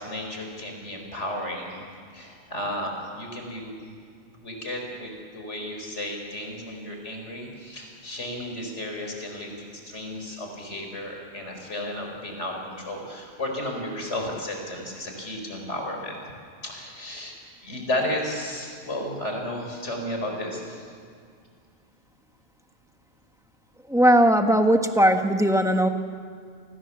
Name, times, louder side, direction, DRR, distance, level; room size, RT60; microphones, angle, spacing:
voice 1, 0.0-1.8 2.1-3.7 4.4-16.2 16.6-17.3 17.6-20.9, left 1 dB, 85° left, 2 dB, 5.1 m, -33 dB
voice 2, 23.9-25.9, right 1 dB, 5° right, 5 dB, 1.4 m, -19 dB
29.5 x 20.0 x 7.3 m, 2.1 s
omnidirectional pair, 1.2 m